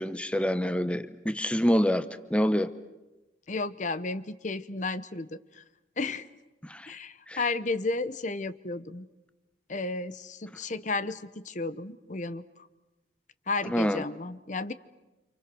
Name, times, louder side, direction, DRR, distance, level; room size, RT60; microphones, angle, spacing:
voice 1, 0.0-2.7 6.6-6.9 7.3-7.4 13.6-14.0, equal, 5° left, 0.8 m, -27 dB
voice 2, 3.5-5.6 6.0-6.3 6.9-9.1 9.7-12.7 13.5-14.7, left 3 dB, 40° left, 0.9 m, -33 dB
30.0 x 27.5 x 6.2 m
head